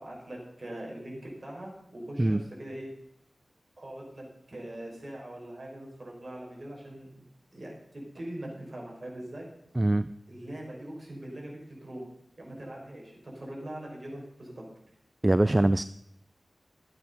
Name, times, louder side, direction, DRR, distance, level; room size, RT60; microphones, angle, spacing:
voice 1, 0.0-2.9 3.8-7.2 7.5-9.5 10.3-14.6, right 1 dB, 50° right, -2 dB, 4.9 m, -42 dB
voice 2, 9.8-10.1 15.2-15.8, right 1 dB, 25° right, 14 dB, 0.4 m, -23 dB
13.0 x 8.9 x 5.5 m, 0.80 s
wide cardioid pair, 55°, 0 cm